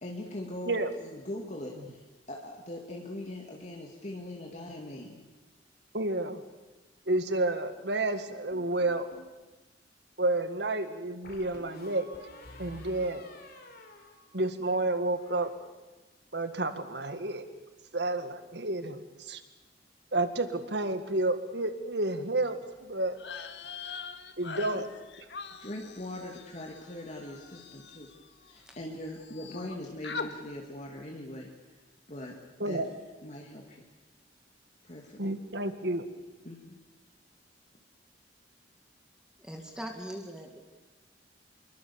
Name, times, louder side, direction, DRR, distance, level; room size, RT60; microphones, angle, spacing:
voice 1, 0.0-5.2 24.7-24.8 25.6-28.1 28.5-31.5 32.1-32.8 33.2-33.8 34.8-35.3 36.4-36.8, left 1 dB, 40° left, 0 dB, 2.4 m, -41 dB
voice 2, 5.9-6.4 7.1-9.1 10.2-12.1 12.6-13.2 14.3-15.5 16.3-17.4 17.9-19.4 20.1-23.2 24.4-24.9 32.6-32.9 35.2-36.0, right 2 dB, 65° right, 9 dB, 1.9 m, -30 dB
sound 1, 8.5-9.4 11.2-14.7 15.0-15.5, equal, 55° left, 3.8 m, -51 dB
sound 2, 23.1-28.8 29.0-29.7 30.0-30.3, left 5 dB, 70° left, 1.8 m, -43 dB
voice 3, 39.4-40.6, equal, 5° right, 3 dB, 2.0 m, -41 dB
26.0 x 22.5 x 7.2 m, 1.2 s
head